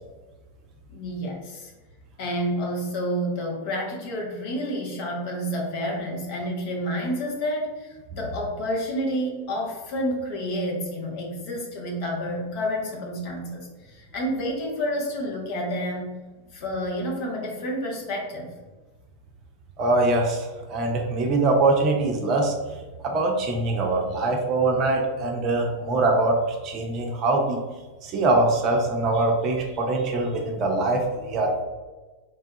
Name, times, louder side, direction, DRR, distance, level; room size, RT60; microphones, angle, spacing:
voice 1, 0.9-1.7 2.2-16.1 16.5-18.5, equal, 45° left, -1 dB, 0.7 m, -29 dB
voice 2, 19.8-22.5 23.0-26.4 26.6-27.6 28.0-31.6, right 2 dB, 35° right, 1 dB, 0.5 m, -23 dB
3.2 x 2.3 x 2.7 m, 1.3 s
figure-of-eight pair, 90°, 0 cm